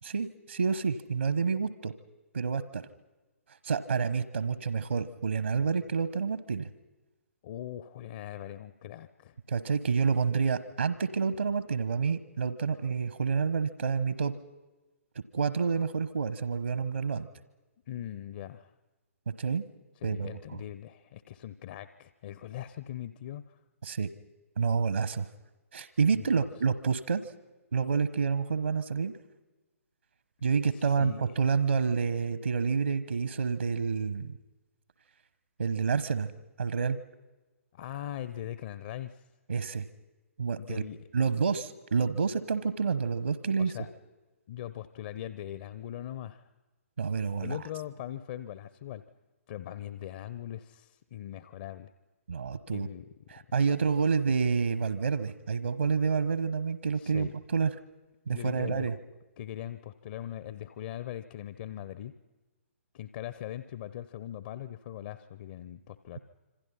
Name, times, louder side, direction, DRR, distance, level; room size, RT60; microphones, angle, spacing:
voice 1, 0.0-1.9 2.3-2.9 3.6-6.7 9.5-14.3 15.3-17.3 19.4-19.6 20.0-20.3 23.8-24.1 24.6-25.3 25.7-27.2 27.7-29.1 30.4-34.3 35.6-36.3 36.6-37.0 39.5-39.9 40.4-40.8 41.1-43.7 47.0-47.6 52.3-52.9 53.3-57.7 58.3-58.9, right 5 dB, 65° right, 14 dB, 1.2 m, -28 dB
voice 2, 7.4-9.3 17.9-18.7 20.0-23.6 26.1-26.3 30.7-31.3 37.7-39.2 40.6-41.0 43.6-43.9 44.5-46.4 47.4-49.0 49.5-51.9 52.7-53.0 57.0-57.3 58.3-58.9 59.4-62.1 62.9-66.2, left 11 dB, 35° left, 14 dB, 0.8 m, -40 dB
27.0 x 26.0 x 5.7 m, 1.2 s
figure-of-eight pair, 130°, 8 cm